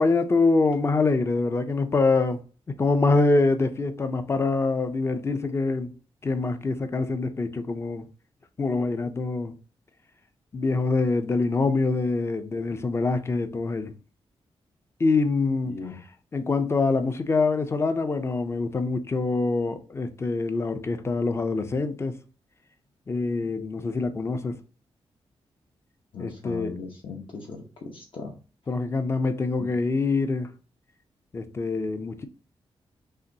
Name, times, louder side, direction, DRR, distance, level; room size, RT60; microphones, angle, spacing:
voice 1, 0.0-2.4 2.8-6.0 6.2-8.0 8.6-9.5 10.5-13.9 15.0-15.8 16.3-22.2 23.1-24.6 26.2-26.8 28.7-30.5 31.3-32.3, left 3 dB, 25° left, 0.5 m, -25 dB
voice 2, 15.7-16.0 26.1-27.6 27.9-28.3, left 4 dB, 60° left, 0.8 m, -38 dB
5.5 x 2.9 x 2.7 m
wide cardioid pair, 150°, 10 cm